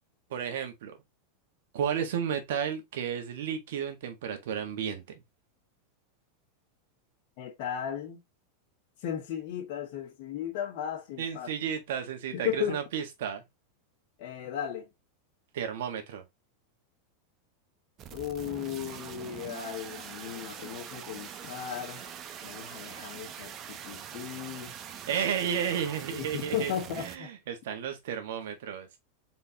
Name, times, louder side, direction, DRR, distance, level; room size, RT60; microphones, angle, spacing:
voice 1, 0.3-1.0 1.7-5.2 11.2-13.4 15.5-16.2 22.9-23.2 25.1-28.9, right 8 dB, 75° right, 1.5 m, -33 dB
voice 2, 7.4-8.2 9.0-11.5 12.3-12.8 14.2-14.9 18.1-22.1 22.4-24.7 26.1-27.3, left 9 dB, 55° left, 1.6 m, -36 dB
sound 1, 18.0-27.2, right 9 dB, 35° right, 0.7 m, -43 dB
4.3 x 3.9 x 2.9 m
supercardioid pair, 130°, 0 cm